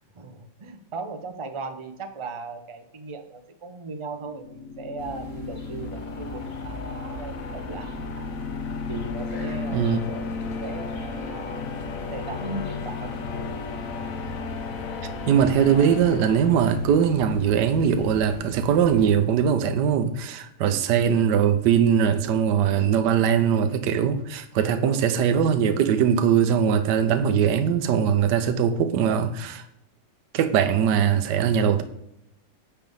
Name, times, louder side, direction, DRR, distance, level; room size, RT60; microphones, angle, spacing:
voice 1, 0.1-8.3 8.9-13.2 24.6-25.1, right 3 dB, 35° right, 0.5 m, -38 dB
sound 1, 4.2-17.2, left 5 dB, 60° left, 1.0 m, -34 dB
sound 2, 5.0-19.1, equal, 25° left, 1.6 m, -41 dB
voice 2, 15.3-29.6 30.3-31.8, right 8 dB, 70° right, 1.3 m, -21 dB
10.0 x 3.5 x 7.0 m
omnidirectional pair, 2.0 m